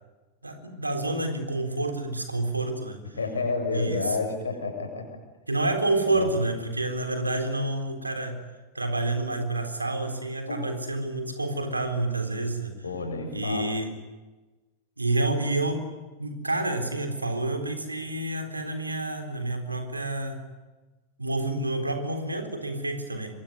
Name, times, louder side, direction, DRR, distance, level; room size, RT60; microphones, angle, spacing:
voice 1, 0.4-3.2 3.7-4.2 5.5-8.4 8.7-12.8 13.3-14.0 15.0-15.9 16.2-20.4 21.2-23.3, right 2 dB, 80° right, 6 dB, 3.9 m, -29 dB
voice 2, 3.2-5.1 6.1-6.3 10.4-10.6 12.8-13.6, left 4 dB, 75° left, 5 dB, 7.2 m, -30 dB
26.0 x 23.5 x 9.6 m, 1.2 s
figure-of-eight pair, 90°, 0 cm